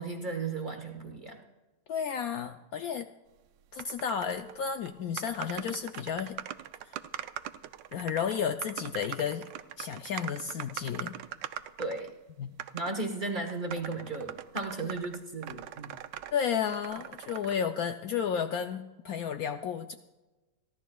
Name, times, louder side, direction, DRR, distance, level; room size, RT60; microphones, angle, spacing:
voice 1, 0.0-1.4 11.8-12.1 12.7-15.9, right 3 dB, 35° right, 3 dB, 1.0 m, -35 dB
voice 2, 1.9-3.1 3.7-6.4 6.8-7.0 7.9-9.5 9.8-11.1 12.4-12.6 14.8-15.0 16.3-19.9, left 7 dB, 70° left, 7 dB, 0.9 m, -32 dB
sound 1, 3.8-4.6 4.8-4.9 5.2-12.1 12.6-12.9 13.5-16.3 16.7-17.5, right 11 dB, 90° right, 1.3 m, -41 dB
28.5 x 12.0 x 2.3 m, 1.1 s
omnidirectional pair, 1.9 m